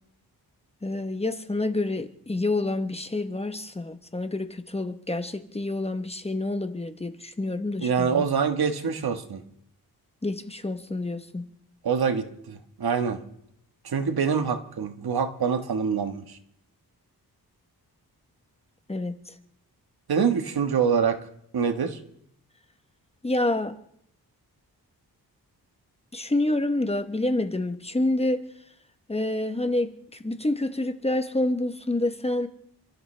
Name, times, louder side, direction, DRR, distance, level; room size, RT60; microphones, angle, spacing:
voice 1, 0.8-8.2 10.2-11.5 18.9-19.2 23.2-23.7 26.1-28.4 29.1-32.5, left 2 dB, 15° left, 8 dB, 1.0 m, -28 dB
voice 2, 7.8-9.4 11.8-13.2 13.8-16.4 20.1-21.2 21.5-22.0, right 6 dB, 75° right, 7 dB, 1.5 m, -25 dB
29.0 x 14.0 x 3.3 m, 0.72 s
wide cardioid pair, 125°, 38 cm